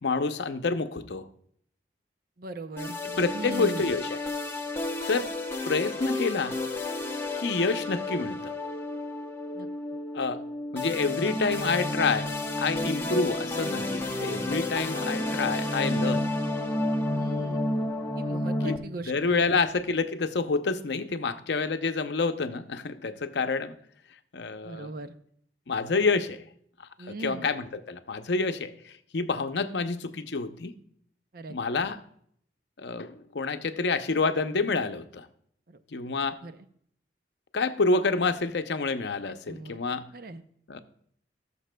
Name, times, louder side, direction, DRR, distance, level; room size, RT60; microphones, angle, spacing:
voice 1, 0.0-1.3 3.0-4.3 5.1-5.3 5.6-6.5 7.4-8.5 10.1-10.4 10.7-12.3 12.6-16.3 18.6-23.7 24.3-24.9 25.7-26.4 27.0-30.7 31.5-32.0 32.8-35.3 35.9-36.4 37.5-40.0 40.7-40.8, left 4 dB, 70° left, 9 dB, 0.6 m, -28 dB
voice 2, 2.4-3.0 3.3-3.8 9.6-9.7 12.8-13.0 17.1-17.6 18.2-19.6 24.6-25.1 27.0-27.5 31.3-31.5 36.4-36.5 39.5-39.8 40.1-40.4, right 2 dB, 55° right, 10 dB, 0.6 m, -39 dB
sound 1, 2.8-18.8, left 2 dB, 15° left, 0.7 m, -31 dB
16.5 x 6.8 x 2.2 m, 0.65 s
head